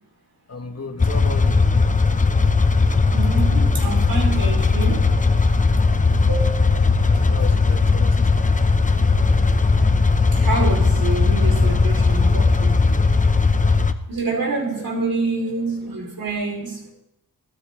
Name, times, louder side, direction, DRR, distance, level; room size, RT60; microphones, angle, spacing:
voice 1, 0.5-1.7 7.3-8.6 14.8-14.9, left 3 dB, 40° left, 1.7 m, -35 dB
sound 1, 1.0-13.9, left 4 dB, 20° left, 0.8 m, -17 dB
voice 2, 3.1-5.1 6.2-7.0 8.3-8.4 10.3-12.8 14.1-16.8, right 3 dB, 65° right, 4.7 m, -27 dB
23.5 x 13.0 x 3.8 m
wide cardioid pair, 100°, 37 cm